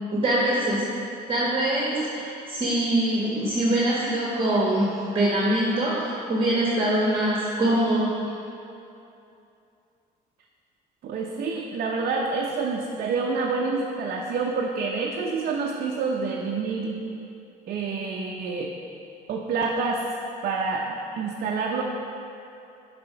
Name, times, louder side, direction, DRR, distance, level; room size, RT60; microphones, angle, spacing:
voice 1, 0.1-0.8 1.3-8.3, right 1 dB, 30° right, -5 dB, 1.1 m, -23 dB
voice 2, 11.0-17.0 17.7-18.7 19.3-20.0 20.4-21.8, right 4 dB, 60° right, -2 dB, 0.7 m, -27 dB
6.8 x 4.3 x 5.6 m, 2.7 s
cardioid pair, 110°, 17 cm